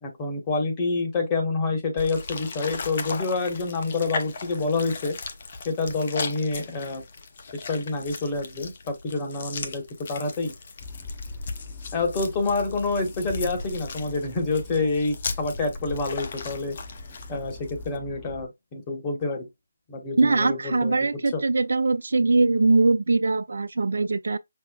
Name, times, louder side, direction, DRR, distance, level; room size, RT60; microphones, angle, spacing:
voice 1, 0.0-5.2 5.6-7.0 7.5-9.8 10.1-10.5 11.9-16.8 17.3-19.5 19.9-21.4, left 3 dB, 20° left, 1.1 m, -27 dB
sound 1, 2.0-18.0, left 4 dB, 40° left, 0.6 m, -37 dB
sound 2, 10.8-18.5, left 2 dB, ahead, 0.7 m, -40 dB
voice 2, 20.2-24.4, right 3 dB, 60° right, 0.4 m, -22 dB
5.5 x 2.0 x 2.3 m
figure-of-eight pair, 155°, 0 cm